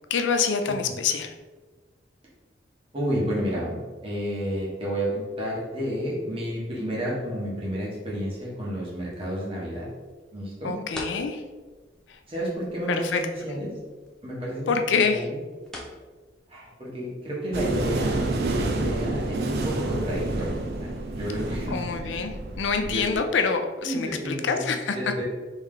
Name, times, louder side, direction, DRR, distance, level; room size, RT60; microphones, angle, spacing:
voice 1, 0.1-1.3 10.6-11.4 12.1-12.2 12.9-13.2 14.7-15.3 21.7-25.0, left 5 dB, 90° left, 6 dB, 0.4 m, -26 dB
voice 2, 2.9-9.9 10.3-10.8 12.3-13.7 14.2-14.7 15.1-15.4 16.5-20.5 20.8-21.8 22.8-23.0 23.8-24.6 24.9-25.2, equal, 30° right, -6 dB, 1.2 m, -31 dB
sound 1, 7.5-20.2, equal, 5° left, 0.5 m, -48 dB
sound 2, 17.5-23.2, right 2 dB, 60° right, 0.4 m, -29 dB
3.6 x 3.1 x 3.2 m, 1.3 s
head